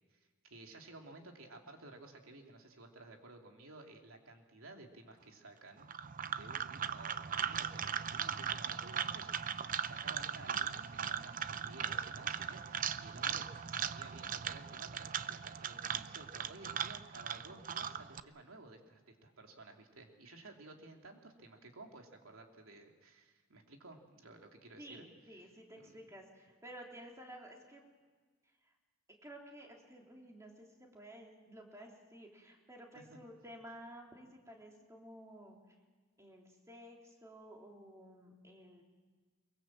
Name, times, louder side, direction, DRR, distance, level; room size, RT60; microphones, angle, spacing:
voice 1, 0.4-5.9 6.2-25.1 25.3-25.5 25.8-26.1 32.9-33.2, right 2 dB, 85° right, 2 dB, 3.0 m, -55 dB
sound 1, 5.8-18.2, right 8 dB, 40° right, 0.6 m, -39 dB
voice 2, 24.8-27.8 29.1-35.6 36.2-38.8, right 1 dB, 15° right, 0 dB, 3.6 m, -53 dB
23.5 x 23.0 x 7.5 m, 1.4 s
head